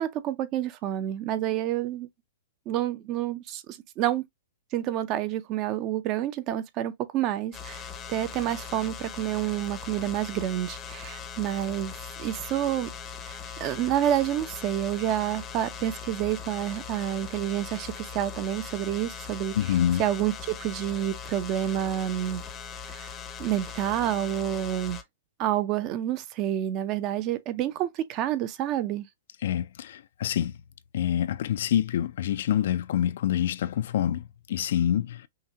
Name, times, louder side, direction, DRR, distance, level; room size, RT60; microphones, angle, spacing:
voice 1, 0.0-2.1 2.7-4.2 4.7-7.8 8.1-11.9 12.2-12.9 13.3-22.4 22.9-23.1 23.4-25.0 25.4-29.1, right 12 dB, 30° right, 0.5 m, -29 dB
sound 1, 7.5-25.0, left 6 dB, 15° left, 0.6 m, -40 dB
voice 2, 19.6-20.0 29.4-30.5 30.9-35.3, left 10 dB, 60° left, 0.3 m, -26 dB
5.7 x 2.2 x 2.8 m
hypercardioid pair, 160°, 0 cm